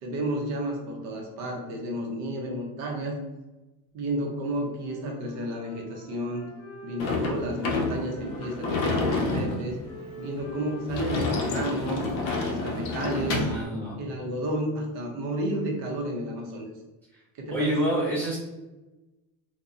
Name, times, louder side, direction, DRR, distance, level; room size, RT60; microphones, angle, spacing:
voice 1, 0.0-3.2 3.9-6.5 6.8-9.8 10.2-12.1 12.5-13.5 14.0-16.7 17.4-17.8, right 1 dB, 55° right, 1 dB, 0.6 m, -31 dB
Wind instrument woodwind instrument, 4.7-8.5 8.8-13.3, equal, 45° left, 0.8 m, -45 dB
Sliding door / Slam, 7.0-13.7, left 3 dB, 70° left, 0.5 m, -29 dB
voice 2, 13.0-14.0 17.5-18.4, right 1 dB, 5° left, -10 dB, 0.3 m, -28 dB
2.5 x 2.0 x 2.3 m, 1.1 s
cardioid pair, 170°, 35 cm